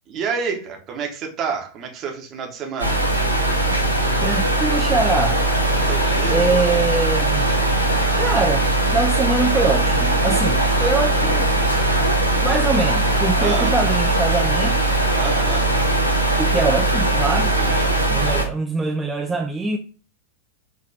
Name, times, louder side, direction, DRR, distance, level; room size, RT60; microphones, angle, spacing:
voice 1, 0.1-3.0 5.8-6.6 13.4-13.7 15.2-15.7 17.6-17.9, right 6 dB, 35° right, 1.1 m, -29 dB
sound 1, 2.8-18.4, right 2 dB, 85° left, 0.7 m, -19 dB
voice 2, 4.2-5.4 6.3-11.5 12.3-14.8 16.4-17.5 18.1-19.8, right 3 dB, 10° right, 0.3 m, -24 dB
5.4 x 3.0 x 2.8 m
figure-of-eight pair, 90°, 0 cm